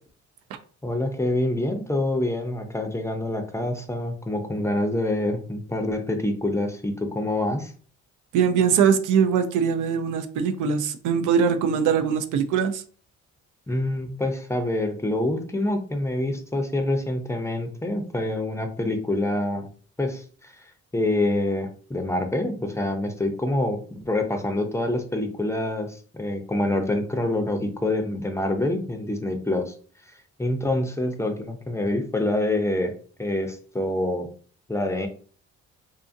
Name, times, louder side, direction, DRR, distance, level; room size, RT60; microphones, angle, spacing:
voice 1, 0.8-7.7 13.7-19.7 20.0-20.5 20.9-29.7 30.4-32.9 33.2-34.3 34.7-35.1, left 1 dB, 10° left, 5 dB, 0.4 m, -26 dB
voice 2, 8.3-12.8, right 7 dB, 85° right, 8 dB, 0.5 m, -22 dB
2.6 x 2.4 x 2.6 m, 0.42 s
cardioid pair, 90°, 30 cm